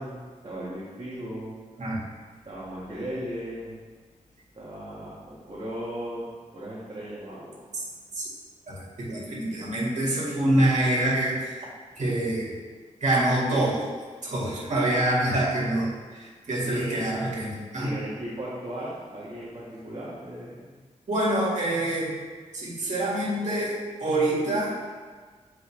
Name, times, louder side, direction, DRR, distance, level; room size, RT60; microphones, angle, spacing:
voice 1, 0.0-1.6 2.4-3.8 4.5-7.6 12.0-12.1 16.6-17.1 17.8-20.7, equal, 40° right, -9 dB, 1.6 m, -37 dB
voice 2, 8.7-11.5 12.0-12.5 13.0-13.8 14.2-17.9 21.1-22.2 22.5-24.8, right 1 dB, 70° right, -6 dB, 2.0 m, -26 dB
8.0 x 4.8 x 3.3 m, 1.4 s
wide cardioid pair, 85°, 13 cm